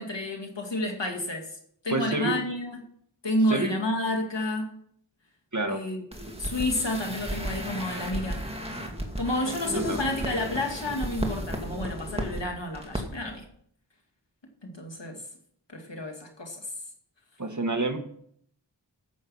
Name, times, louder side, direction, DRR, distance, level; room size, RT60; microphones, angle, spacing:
voice 1, 0.0-1.6 1.8-2.9 3.2-4.7 5.7-8.4 9.2-13.4 14.6-15.2 15.7-16.7, left 1 dB, 75° left, 1 dB, 2.5 m, -30 dB
voice 2, 1.9-2.4 3.5-3.8 5.5-5.8 9.4-10.0 17.4-18.0, right 2 dB, 40° right, 5 dB, 1.8 m, -29 dB
sound 1, 6.1-12.4 12.7-13.0 13.3-13.4, right 1 dB, 15° right, 2.2 m, -34 dB
13.5 x 8.0 x 5.6 m, 0.67 s
wide cardioid pair, 45°, 44 cm